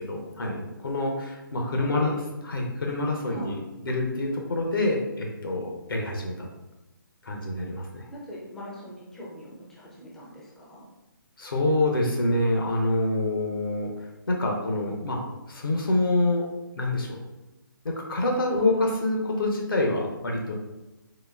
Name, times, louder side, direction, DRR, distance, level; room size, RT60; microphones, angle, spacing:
voice 1, 0.0-2.2 2.5-6.5 7.2-8.1 11.4-15.2 15.5-16.4 16.7-17.2 17.8-20.5, left 2 dB, 75° left, 0 dB, 0.7 m, -26 dB
voice 2, 1.8-2.2 3.3-3.6 8.1-10.9 18.5-18.8, equal, 5° left, -6 dB, 0.4 m, -40 dB
4.0 x 2.5 x 2.3 m, 1.0 s
figure-of-eight pair, 150°, 12 cm